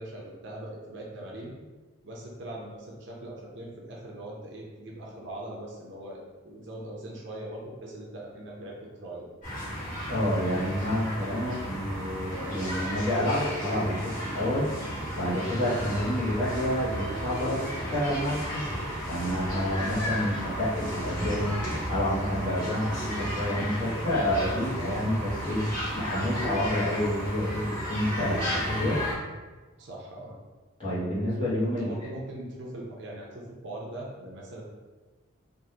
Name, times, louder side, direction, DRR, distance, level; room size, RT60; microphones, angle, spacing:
voice 1, 0.0-1.5 2.0-9.3 19.9-20.1 29.8-30.4 31.8-34.6, right 1 dB, 55° right, -3 dB, 0.6 m, -41 dB
sound 1, 9.4-29.1, equal, 40° left, 1.3 m, -33 dB
voice 2, 10.1-18.7 19.1-29.0 30.8-31.9, equal, 25° left, -10 dB, 1.1 m, -29 dB
3.6 x 2.5 x 2.7 m, 1.3 s
head